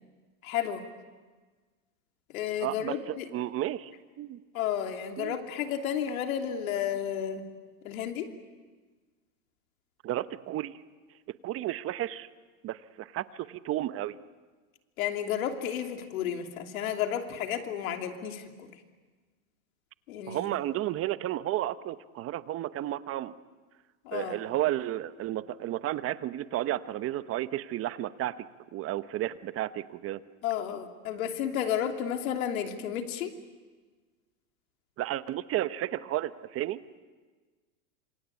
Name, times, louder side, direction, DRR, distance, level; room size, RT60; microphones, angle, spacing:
voice 1, 0.4-0.9 2.3-3.3 4.5-7.5 7.8-8.3 15.0-18.7 20.1-20.5 24.0-24.4 30.4-33.3, left 9 dB, 75° left, 5 dB, 3.1 m, -32 dB
voice 2, 2.6-3.0 3.3-3.9 4.2-4.4 5.2-5.4 10.0-10.8 11.4-12.3 12.6-14.1 20.3-23.3 24.1-30.2 35.0-36.8, right 14 dB, 35° right, 14 dB, 1.0 m, -32 dB
27.0 x 26.0 x 8.4 m, 1.4 s
supercardioid pair, 125°, 42 cm